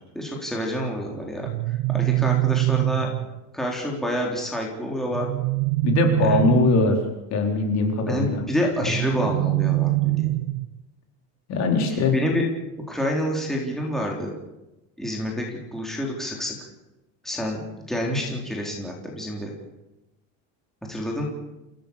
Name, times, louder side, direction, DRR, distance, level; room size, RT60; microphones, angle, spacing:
voice 1, 0.1-3.1 3.5-5.3 6.2-6.4 8.1-10.3 11.9-12.4 12.9-14.3 15.0-16.7 17.2-17.6 17.9-19.5 20.9-21.2, equal, ahead, -1 dB, 3.7 m, -28 dB
sound 1, 1.4-3.4 5.1-7.1 8.8-10.8, right 19 dB, 75° right, 1.1 m, -24 dB
voice 2, 5.8-7.0 7.3-8.4 8.9-9.0 11.5-12.2, left 4 dB, 45° left, 3 dB, 4.5 m, -21 dB
28.5 x 17.0 x 7.1 m, 0.97 s
cardioid pair, 170°, 39 cm